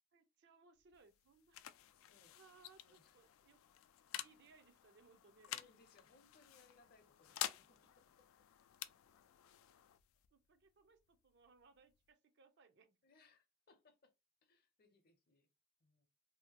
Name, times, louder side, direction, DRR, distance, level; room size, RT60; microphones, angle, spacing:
voice 1, 0.1-1.6 2.3-3.6 4.2-5.7 10.3-13.0, right 4 dB, 60° right, 0.5 m, -67 dB
sound 1, 0.8-12.1, left 12 dB, 90° left, 0.3 m, -51 dB
voice 2, 1.9-2.4 2.8-3.1 4.1-4.3 5.5-8.3 13.0-14.1 14.4-15.5 15.8-16.1, left 3 dB, 50° left, 0.6 m, -70 dB
2.7 x 2.1 x 2.8 m
head